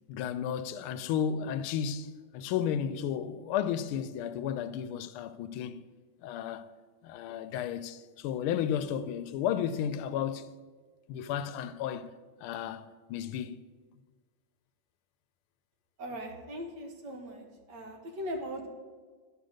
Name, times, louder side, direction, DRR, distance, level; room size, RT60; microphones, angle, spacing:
voice 1, 0.1-5.8 6.2-6.7 7.0-10.5 11.1-12.1 12.4-13.6, left 9 dB, 85° left, 1.4 m, -33 dB
voice 2, 16.0-18.7, equal, 60° right, 1.7 m, -39 dB
11.5 x 5.1 x 6.4 m
omnidirectional pair, 2.3 m